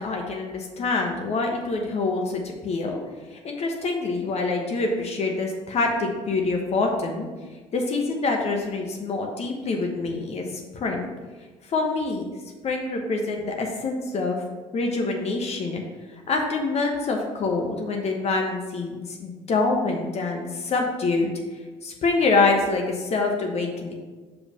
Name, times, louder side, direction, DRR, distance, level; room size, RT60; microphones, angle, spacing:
voice 1, 0.0-3.0 3.3-7.3 7.7-10.5 10.7-11.1 11.7-12.3 12.6-14.4 14.7-15.8 16.3-21.3 21.8-23.9, left 3 dB, 45° left, 2 dB, 1.0 m, -25 dB
5.6 x 4.5 x 5.4 m, 1.3 s
hypercardioid pair, 55°, 15 cm